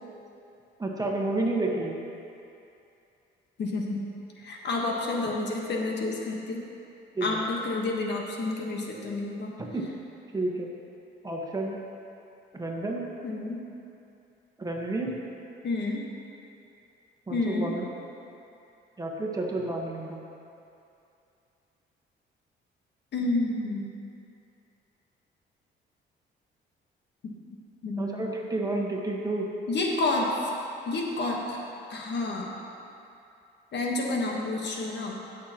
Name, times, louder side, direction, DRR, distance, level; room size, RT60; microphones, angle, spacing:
voice 1, 0.8-2.0 7.1-7.4 9.6-9.9 10.3-10.7 11.2-11.8 12.5-13.0 14.6-15.1 17.3-17.8 19.0-20.2 28.0-29.5, right 2 dB, 20° right, -1 dB, 1.4 m, -30 dB
voice 2, 3.6-4.1 4.4-6.7 7.2-9.6 13.2-13.7 15.6-16.1 17.3-17.7 23.1-23.9 27.8-28.3 29.7-30.3 30.9-31.6 31.9-32.5 33.7-35.2, left 2 dB, 60° left, -1 dB, 1.4 m, -29 dB
17.0 x 6.6 x 3.0 m, 2.7 s
cardioid pair, 90°, 20 cm